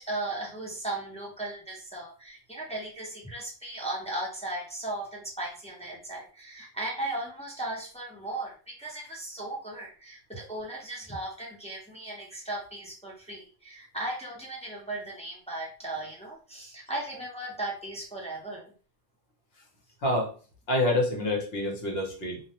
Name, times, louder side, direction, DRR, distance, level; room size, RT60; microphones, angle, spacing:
voice 1, 0.0-18.7, right 2 dB, 10° left, -4 dB, 0.3 m, -37 dB
voice 2, 20.0-20.3 20.7-22.4, left 1 dB, 60° left, 0 dB, 0.9 m, -27 dB
2.3 x 2.1 x 2.7 m, 0.39 s
omnidirectional pair, 1.3 m